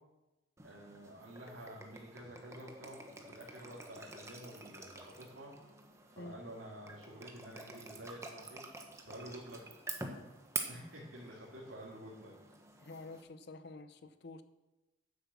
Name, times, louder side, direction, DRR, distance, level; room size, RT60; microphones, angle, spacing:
sound 1, 0.6-13.2, right 3 dB, 15° right, 1.0 m, -48 dB
voice 1, 0.6-5.5 6.1-8.6 9.0-9.8 10.7-12.3, right 1 dB, 65° right, -6 dB, 2.9 m, -50 dB
voice 2, 12.8-14.4, left 3 dB, 55° left, 11 dB, 0.7 m, -49 dB
9.8 x 8.0 x 7.2 m, 1.1 s
head